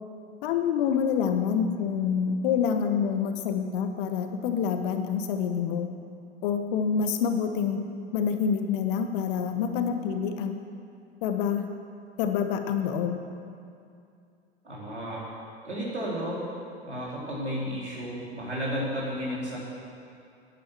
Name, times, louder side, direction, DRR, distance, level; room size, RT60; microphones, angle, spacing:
voice 1, 0.4-5.9 6.4-7.8 8.1-10.5 11.2-11.7 12.2-13.2, left 7 dB, 50° left, 7 dB, 1.2 m, -27 dB
voice 2, 14.6-15.3 15.6-16.4 16.8-19.6, equal, 90° right, -6 dB, 3.9 m, -32 dB
10.0 x 9.5 x 7.5 m, 2.5 s
figure-of-eight pair, 90°, 33 cm